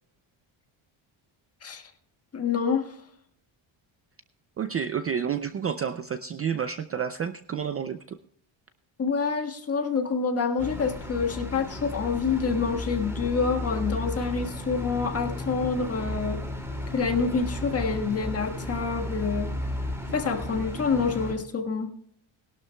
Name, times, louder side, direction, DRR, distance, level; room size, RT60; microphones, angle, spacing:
voice 1, 2.3-2.9 9.0-16.4 16.9-19.5 20.1-21.9, left 5 dB, 30° left, 4 dB, 1.5 m, -27 dB
voice 2, 4.6-8.2, right 7 dB, 30° right, 10 dB, 0.4 m, -30 dB
sound 1, 10.6-21.3, left 1 dB, 5° right, 2.2 m, -34 dB
20.0 x 12.0 x 2.2 m, 0.66 s
cardioid pair, 160°, 49 cm